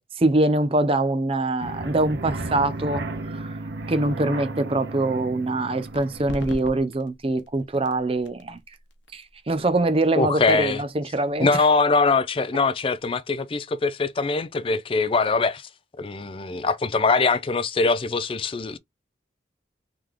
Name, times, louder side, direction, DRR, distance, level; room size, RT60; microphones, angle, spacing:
voice 1, 0.0-3.6 3.9-8.6 9.1-11.5, right 2 dB, 30° right, 0.5 m, -24 dB
sound 1, 1.6-6.7, right 2 dB, 65° right, 0.9 m, -34 dB
sound 2, 5.8-13.1, left 1 dB, 80° left, 1.0 m, -44 dB
voice 2, 10.2-10.8 11.4-15.7 16.0-18.8, left 4 dB, 30° left, 0.4 m, -22 dB
3.7 x 3.4 x 3.0 m
head